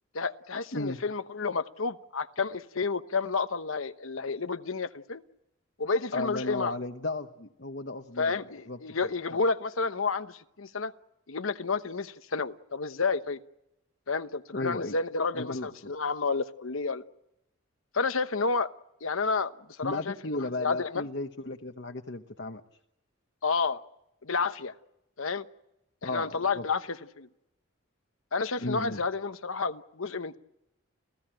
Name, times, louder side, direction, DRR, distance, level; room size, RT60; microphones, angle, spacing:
voice 1, 0.1-5.2 5.8-6.8 8.2-10.9 11.3-13.4 14.1-17.0 17.9-18.7 19.0-19.5 19.8-21.1 23.4-23.8 24.2-24.7 25.2-25.4 26.0-27.3 28.3-30.4, left 4 dB, 75° left, 11 dB, 1.0 m, -30 dB
voice 2, 6.1-8.4 8.7-8.8 9.3-9.4 14.5-15.0 15.3-15.9 19.8-22.6 26.0-26.6 28.6-29.0, left 2 dB, 55° left, 6 dB, 1.1 m, -34 dB
30.0 x 16.5 x 9.0 m, 0.89 s
head